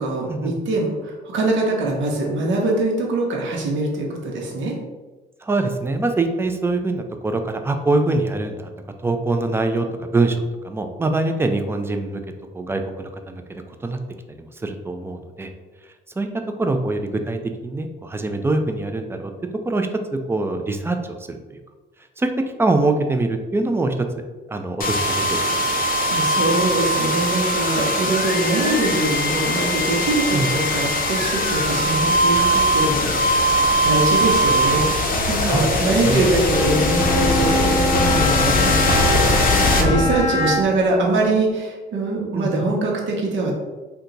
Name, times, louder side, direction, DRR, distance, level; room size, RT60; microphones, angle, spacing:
voice 1, 0.0-4.7 25.8-33.1 33.8-43.5, right 2 dB, 75° right, -1 dB, 0.8 m, -23 dB
voice 2, 5.4-8.7 9.0-12.2 12.5-13.4 13.8-14.0 14.4-15.5 16.2-16.3 16.6-19.3 19.6-21.0 21.3-21.6 22.2-22.3 22.6-24.1 24.5-25.4 30.3-30.5 35.5-36.2 42.3-42.6, right 2 dB, 10° right, 6 dB, 0.3 m, -23 dB
sound 1, 24.8-40.6, left 1 dB, 45° left, 0.5 m, -20 dB
Bowed string instrument, 36.4-40.9, equal, 15° left, 1.0 m, -24 dB
2.8 x 2.2 x 3.8 m, 1.2 s
cardioid pair, 90°, 20 cm